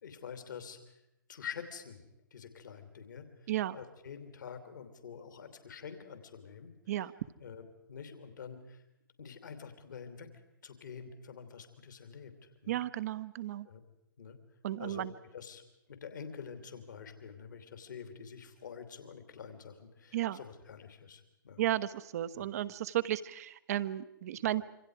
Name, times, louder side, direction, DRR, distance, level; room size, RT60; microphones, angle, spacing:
voice 1, 0.0-0.9 1.3-2.0 2.3-6.7 7.4-8.8 9.2-10.3 10.6-12.3 12.6-12.8 13.6-13.8 14.2-14.4 14.8-15.1 15.3-15.6 15.9-21.6 22.3-22.5, left 7 dB, 60° left, 8 dB, 3.0 m, -47 dB
voice 2, 12.7-13.7 14.6-15.1 20.1-20.4 21.6-24.6, right 13 dB, 45° right, 13 dB, 1.0 m, -33 dB
27.0 x 25.5 x 4.9 m, 0.86 s
figure-of-eight pair, 120°, 11 cm